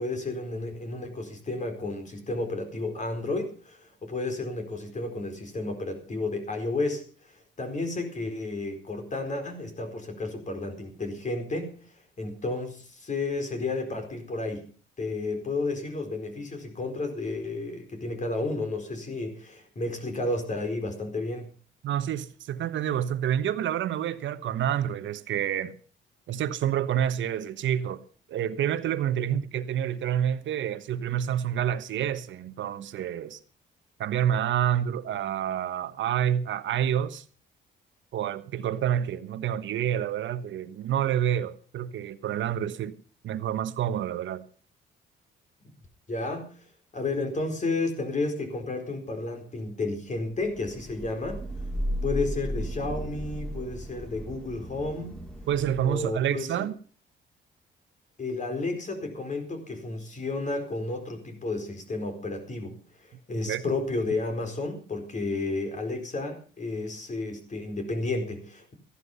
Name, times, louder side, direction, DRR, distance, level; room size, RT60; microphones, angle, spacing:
voice 1, 0.0-11.8 12.2-14.7 15.0-21.5 46.1-46.6 46.9-51.5 52.0-55.2 55.8-56.7 58.2-68.7, left 2 dB, 40° left, 4.5 m, -32 dB
voice 2, 21.8-25.7 26.3-28.0 28.3-33.4 34.0-37.2 38.1-42.9 43.2-44.4 55.5-56.7 63.5-63.6, right 10 dB, 75° right, 1.2 m, -28 dB
Thunder / Rain, 50.4-56.2, equal, 5° left, 3.8 m, -35 dB
14.5 x 11.5 x 5.5 m
cardioid pair, 90°, 20 cm